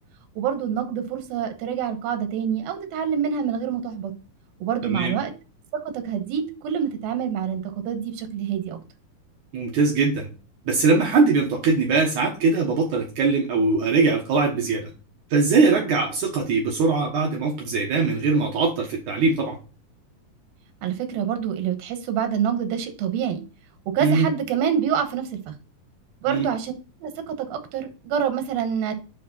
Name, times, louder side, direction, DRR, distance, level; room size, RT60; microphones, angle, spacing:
voice 1, 0.4-4.1 4.6-5.3 5.8-8.8 20.8-23.4 23.9-25.5 26.2-26.7 27.0-28.9, right 8 dB, 85° right, 7 dB, 3.0 m, -26 dB
voice 2, 4.8-5.1 9.5-10.3 10.7-14.9 15.3-19.6 24.0-24.3 26.3-26.5, right 4 dB, 65° right, -1 dB, 2.6 m, -21 dB
9.5 x 4.1 x 4.1 m, 0.33 s
omnidirectional pair, 4.2 m